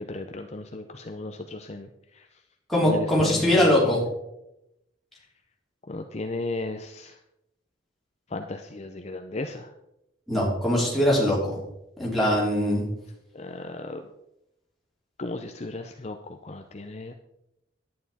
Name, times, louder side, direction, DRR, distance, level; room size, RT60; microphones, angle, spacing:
voice 1, 0.0-2.3 2.8-4.0 5.9-7.2 8.3-9.7 13.3-14.0 15.2-17.1, left 2 dB, 35° left, 5 dB, 0.6 m, -35 dB
voice 2, 2.7-4.0 10.3-11.6 12.0-12.8, left 1 dB, ahead, -6 dB, 3.3 m, -22 dB
11.0 x 9.4 x 4.2 m, 0.86 s
head